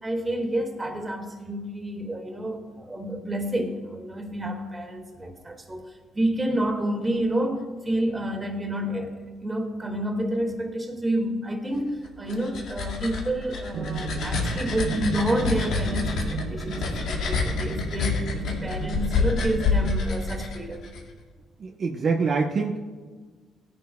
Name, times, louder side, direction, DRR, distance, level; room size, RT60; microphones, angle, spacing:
voice 1, 0.0-20.8, right 1 dB, 20° right, 3 dB, 2.2 m, -29 dB
sound 1, 12.0-21.0, left 4 dB, 80° left, 2.0 m, -28 dB
sound 2, 13.7-19.9, right 8 dB, 75° right, 0.5 m, -35 dB
voice 2, 21.6-22.8, right 4 dB, 50° right, 1 dB, 0.9 m, -25 dB
17.5 x 10.5 x 2.3 m, 1.4 s
cardioid pair, 90°, 0 cm